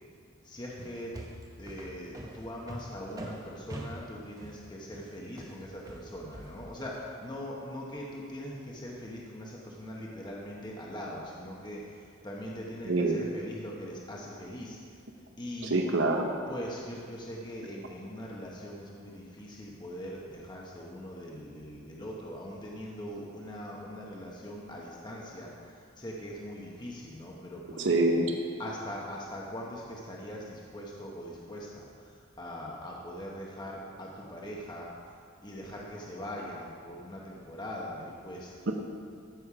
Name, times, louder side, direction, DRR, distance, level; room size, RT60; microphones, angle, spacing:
voice 1, 0.4-1.1 1.6-14.8 15.4-15.8 16.5-27.9 28.6-35.1 35.4-38.7, equal, 20° left, -3 dB, 1.0 m, -41 dB
sound 1, 0.8-7.0, right 1 dB, 15° right, 0.8 m, -44 dB
voice 2, 12.9-13.2 15.6-16.3 27.8-28.3 38.7-38.8, right 2 dB, 60° right, 3 dB, 0.9 m, -25 dB
14.0 x 6.6 x 4.9 m, 2.2 s
head